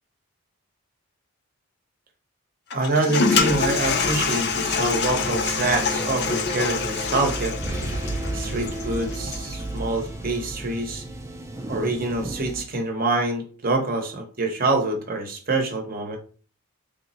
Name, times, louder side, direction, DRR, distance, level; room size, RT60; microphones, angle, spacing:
Toilet flush, 2.7-9.6, left 5 dB, 50° left, 0.4 m, -26 dB
voice 1, 2.7-7.5 8.3-11.0 11.7-16.2, right 2 dB, 40° right, 3 dB, 0.7 m, -26 dB
sound 1, 3.3-12.6, right 1 dB, 15° right, 0.4 m, -33 dB
3.2 x 2.0 x 4.0 m, 0.39 s
head